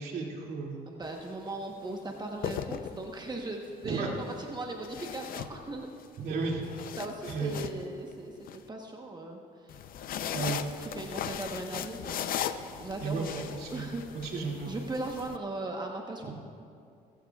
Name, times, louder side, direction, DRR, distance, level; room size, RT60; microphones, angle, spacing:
voice 1, 0.0-0.8 3.8-4.1 6.2-6.6 7.3-7.7 10.3-10.6 13.0-14.7 16.2-16.3, right 4 dB, 70° right, -1 dB, 2.5 m, -34 dB
voice 2, 0.9-5.9 7.0-9.8 10.8-12.3 12.8-13.4 13.7-14.0 14.3-16.3, right 2 dB, 25° right, 1 dB, 1.0 m, -38 dB
sound 1, 1.0-1.3 2.2-3.4 4.8-6.1 6.5-8.6 9.7-15.4, left 9 dB, 60° left, 0.6 m, -38 dB
21.0 x 14.0 x 2.4 m, 2.4 s
cardioid pair, 110°, 17 cm